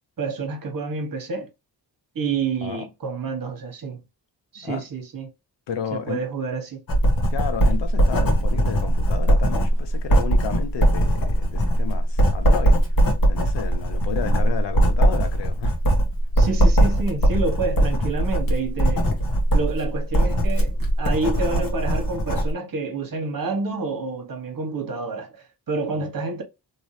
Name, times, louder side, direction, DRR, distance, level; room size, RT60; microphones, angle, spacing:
voice 1, 0.2-1.5 2.1-4.0 4.5-5.3 5.9-6.8 16.4-19.1 19.5-26.4, right 4 dB, 55° right, 1.1 m, -28 dB
voice 2, 5.7-6.2 7.3-12.8 13.2-15.7 26.0-26.1, left 7 dB, 90° left, 0.7 m, -32 dB
Writing, 6.9-22.5, right 1 dB, 55° left, 1.3 m, -20 dB
3.1 x 2.7 x 3.1 m
wide cardioid pair, 100°, 41 cm